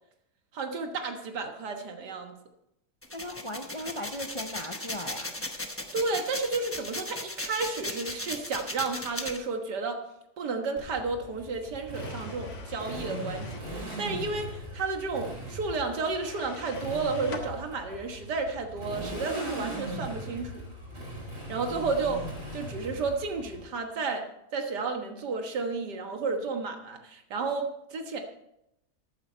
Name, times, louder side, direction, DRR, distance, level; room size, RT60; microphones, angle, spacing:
voice 1, 0.5-2.4 5.9-10.0 10.4-20.6 21.5-22.3 22.5-28.2, right 4 dB, 85° right, 5 dB, 2.0 m, -32 dB
sound 1, 3.0-9.4, left 1 dB, 10° left, 0.7 m, -36 dB
voice 2, 3.1-5.4, left 1 dB, 55° left, 5 dB, 0.3 m, -38 dB
Motorcycle, 10.8-23.6, equal, 40° right, 4.9 m, -39 dB
sound 2, 11.9-13.7 16.1-17.5, left 4 dB, 85° left, 2.0 m, -44 dB
14.5 x 9.0 x 4.4 m, 0.85 s
omnidirectional pair, 1.8 m